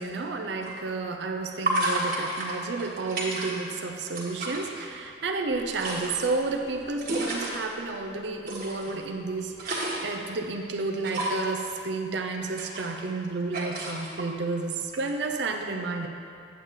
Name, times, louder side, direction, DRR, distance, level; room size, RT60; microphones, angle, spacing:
voice 1, 0.0-16.1, right 3 dB, 65° right, 3 dB, 0.6 m, -31 dB
sound 1, 0.6-0.7 1.7-3.8 4.1-4.6 5.5-7.6 8.5-8.9 9.3-10.2 11.0-11.5 12.3-13.3 13.5-14.2 14.9-15.3, right 1 dB, 50° right, 1.5 m, -31 dB
8.7 x 8.1 x 3.6 m, 2.4 s
head